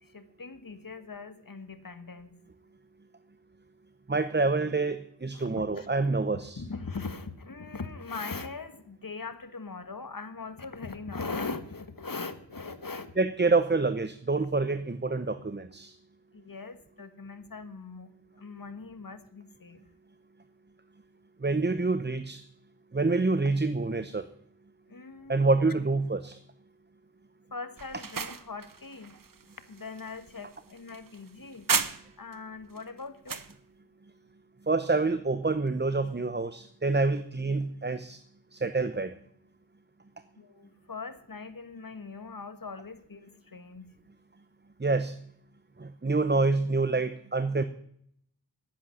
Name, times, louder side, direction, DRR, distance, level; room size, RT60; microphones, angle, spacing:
voice 1, 0.0-2.4 5.3-5.9 6.3-13.1 16.3-19.8 24.9-25.7 27.5-29.2 29.7-31.7 32.2-33.4 40.4-43.9, left 4 dB, 50° left, 11 dB, 1.5 m, -41 dB
voice 2, 4.1-6.6 13.2-15.9 21.4-22.4 22.9-24.3 25.3-26.4 34.7-38.2 38.5-39.1 44.8-45.2 45.8-47.6, right 3 dB, 25° right, 12 dB, 0.8 m, -27 dB
sound 1, 27.8-32.3 32.8-33.5, right 5 dB, 50° right, 0.9 m, -34 dB
10.0 x 8.8 x 9.7 m, 0.67 s
cardioid pair, 40°, 43 cm